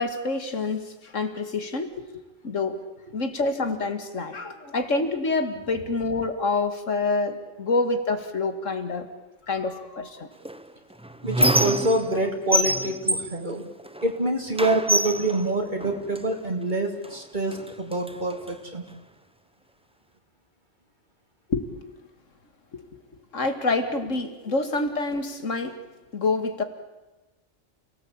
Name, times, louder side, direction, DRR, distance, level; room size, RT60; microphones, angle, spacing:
voice 1, 0.0-2.8 3.1-9.1 9.4-10.3 21.5-21.6 22.7-23.0 23.3-25.8 26.1-26.6, left 3 dB, 80° left, 8 dB, 2.5 m, -27 dB
Squeak, 10.4-12.2 12.5-14.2 14.6-16.3 17.0-17.2 17.5-18.5, right 1 dB, 5° right, 0.7 m, -26 dB
voice 2, 11.2-13.7 14.0-18.8, right 2 dB, 40° right, 2 dB, 2.9 m, -26 dB
29.0 x 18.5 x 8.8 m, 1.1 s
omnidirectional pair, 1.3 m